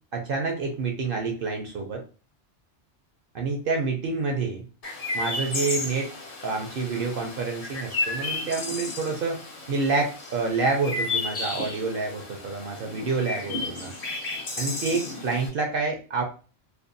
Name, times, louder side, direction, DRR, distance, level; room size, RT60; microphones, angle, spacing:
voice 1, 0.1-2.0 3.3-4.7 5.1-6.1 6.4-9.4 9.7-13.9 14.6-16.2, right 4 dB, 60° right, 3 dB, 0.6 m, -28 dB
Chirp tweet, 4.8-15.5, left 3 dB, 50° left, 0.5 m, -33 dB
2.5 x 2.1 x 2.5 m, 0.36 s
omnidirectional pair, 1.2 m